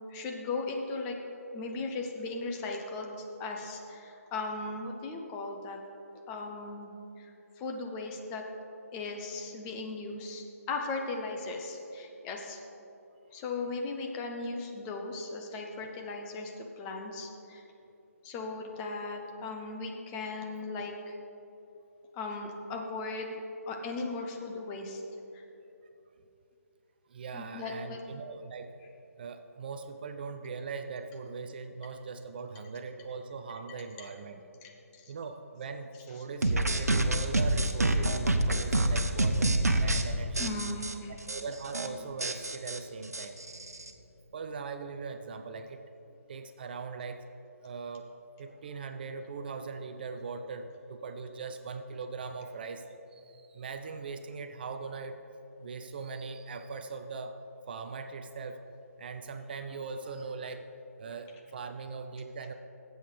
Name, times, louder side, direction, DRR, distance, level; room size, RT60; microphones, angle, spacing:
voice 1, 0.1-1.2 1.5-5.8 6.3-8.4 8.9-12.6 13.3-17.6 18.2-21.2 22.1-23.4 23.7-25.0 25.3-25.4 27.3-28.0 34.0-34.1 34.6-35.1 40.4-41.2, left 3 dB, 20° left, 2 dB, 0.8 m, -37 dB
voice 2, 27.1-28.7 29.2-34.4 35.1-40.5 41.1-43.4 44.3-45.8 46.3-47.2 47.6-48.1 48.4-55.2 55.6-57.4 57.7-58.6 59.0-60.6 61.0-62.5, right 4 dB, 40° right, 7 dB, 0.5 m, -40 dB
sound 1, 36.4-40.0 40.4-40.9 41.3-41.4 41.7-41.9 42.2-43.9, right 1 dB, 85° right, 0.9 m, -27 dB
18.0 x 7.8 x 3.4 m, 3.0 s
figure-of-eight pair, 145°, 8 cm